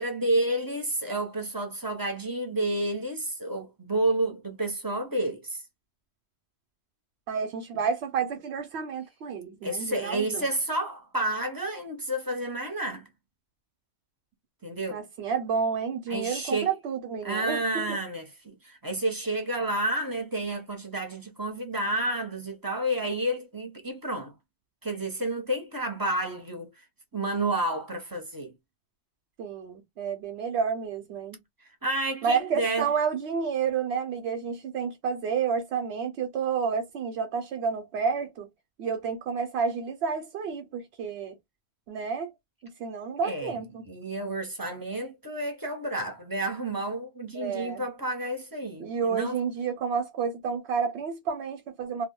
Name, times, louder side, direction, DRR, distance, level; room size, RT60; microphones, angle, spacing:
voice 1, 0.0-5.6 9.6-13.1 14.6-15.0 16.1-16.7 17.2-24.3 24.8-26.7 27.1-28.5 31.8-32.9 43.2-43.6 43.9-49.4, right 1 dB, 25° right, 0.5 m, -30 dB
voice 2, 7.3-10.5 14.9-18.0 29.4-31.4 32.2-38.5 38.8-41.4 41.9-42.3 42.6-43.8 47.3-47.9 48.8-52.1, right 6 dB, 90° right, 0.9 m, -30 dB
2.3 x 2.0 x 3.5 m
omnidirectional pair, 1.1 m